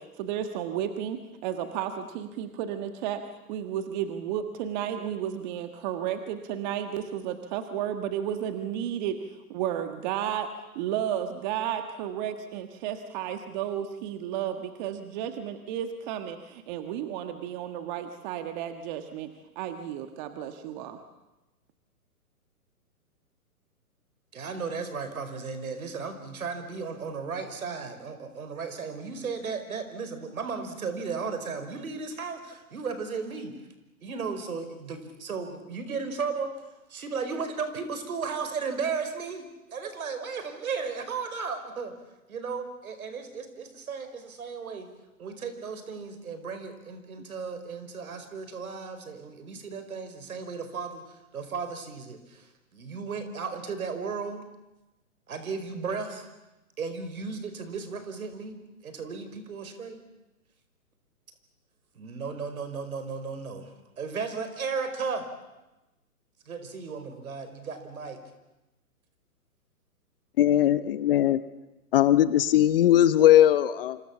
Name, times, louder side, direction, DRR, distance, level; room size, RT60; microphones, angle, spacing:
voice 1, 0.0-3.2 3.5-9.2 9.5-10.5 10.7-19.3 19.5-21.0, right 10 dB, 30° right, 8 dB, 1.7 m, -32 dB
voice 2, 24.3-33.6 34.0-36.5 36.9-41.9 42.3-44.9 45.2-54.4 55.3-56.3 56.8-58.5 58.8-60.0 61.9-65.2 66.4-68.2, right 5 dB, 65° right, 9 dB, 5.2 m, -35 dB
voice 3, 70.4-71.4 71.9-74.0, left 12 dB, 40° left, 15 dB, 1.1 m, -19 dB
27.5 x 26.5 x 7.3 m, 1.0 s
hypercardioid pair, 135°, 45 cm